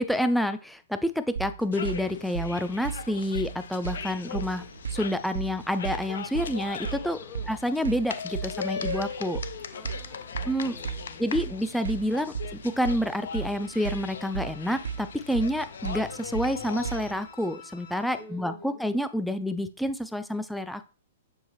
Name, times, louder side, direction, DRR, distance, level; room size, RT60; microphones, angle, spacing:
voice 1, 0.0-4.6 4.9-7.2 7.5-9.4 10.5-10.8 11.2-20.9, equal, ahead, 11 dB, 0.3 m, -28 dB
sound 1, 0.8-18.2, left 5 dB, 60° left, 1.9 m, -55 dB
sound 2, 1.4-17.2, right 7 dB, 85° right, 0.3 m, -36 dB
sound 3, 1.7-17.1, left 6 dB, 75° left, 0.5 m, -39 dB
voice 2, 7.2-7.5 9.7-11.3 18.1-18.9, left 2 dB, 30° left, 5 dB, 1.1 m, -47 dB
6.3 x 2.5 x 3.0 m, 0.36 s
hypercardioid pair, 130°, 0 cm